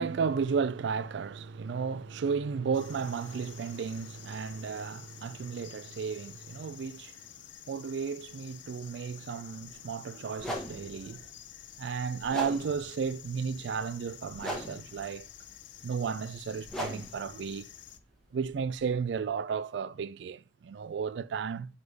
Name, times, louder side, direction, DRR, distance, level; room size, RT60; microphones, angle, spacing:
voice 1, 0.0-7.2 7.7-11.3 11.8-15.3 15.8-17.7 18.3-21.7, right 6 dB, 80° right, 0.3 m, -33 dB
sound 1, 2.7-18.0, left 11 dB, 90° left, 0.6 m, -50 dB
sound 2, 9.6-9.7 10.3-19.2, equal, 5° left, 1.2 m, -42 dB
8.0 x 3.4 x 3.4 m
head